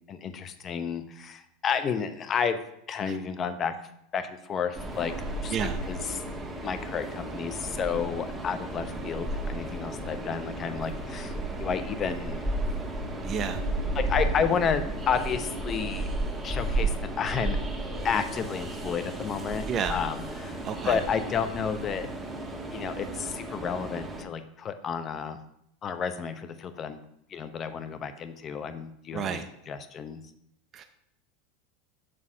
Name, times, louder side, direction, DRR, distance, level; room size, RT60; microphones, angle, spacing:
voice 1, 0.1-2.6 2.9-3.8 4.1-5.1 5.4-5.6 5.9-6.2 6.6-11.3 11.6-12.5 13.9-16.1 16.4-17.6 18.0-19.6 19.9-22.1 22.7-25.4 25.8-27.0 27.3-29.4 29.7-30.2, left 6 dB, 30° left, 9 dB, 0.8 m, -31 dB
Train, 4.7-24.2, right 2 dB, 15° right, 1.3 m, -33 dB
voice 2, 13.2-13.6 19.7-20.0 20.6-21.0 29.1-29.4 30.7-30.8, right 7 dB, 35° right, 6 dB, 0.6 m, -30 dB
7.6 x 4.1 x 6.0 m, 0.76 s
supercardioid pair, 120°, 0 cm